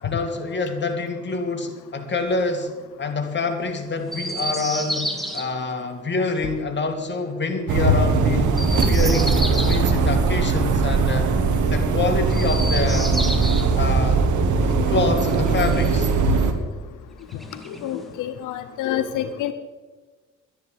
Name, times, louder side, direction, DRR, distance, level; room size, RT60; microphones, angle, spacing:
voice 1, 0.0-2.7 3.0-11.3 11.6-13.4 13.7-16.1, left 3 dB, 35° left, 4 dB, 2.5 m, -26 dB
Chirp tweet, 4.1-5.4 8.4-9.9 12.2-13.7 15.1-16.2 17.3-18.2, equal, ahead, 2.2 m, -31 dB
sound 1, 7.7-16.5, right 4 dB, 75° right, 1.7 m, -20 dB
voice 2, 17.8-19.5, left 11 dB, 90° left, 10 dB, 0.8 m, -27 dB
11.5 x 10.5 x 8.1 m, 1.4 s
cardioid pair, 90°, 30 cm